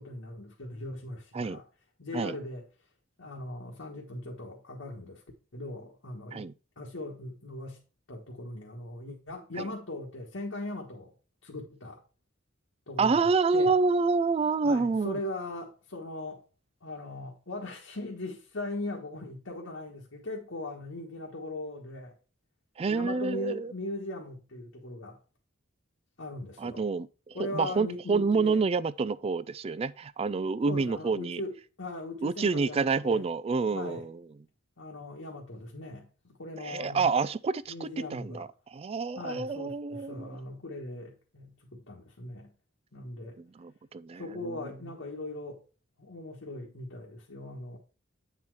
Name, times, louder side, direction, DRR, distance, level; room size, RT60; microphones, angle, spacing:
voice 1, 0.0-1.6 2.0-2.6 3.2-5.2 5.5-6.5 6.8-7.8 8.1-11.1 11.4-12.0 12.9-13.7 14.6-16.4 16.8-22.1 22.9-25.2 26.2-26.8 27.3-28.6 30.6-33.2 33.7-34.0 34.8-37.1 37.7-38.5 39.1-42.5 42.9-43.4 44.2-45.6 46.0-47.8, left 2 dB, 80° left, 1.5 m, -39 dB
voice 2, 13.0-15.2 22.8-23.7 26.6-31.4 32.2-34.2 36.6-40.3 43.4-44.4, right 4 dB, 30° right, 0.3 m, -28 dB
8.6 x 4.4 x 4.7 m
head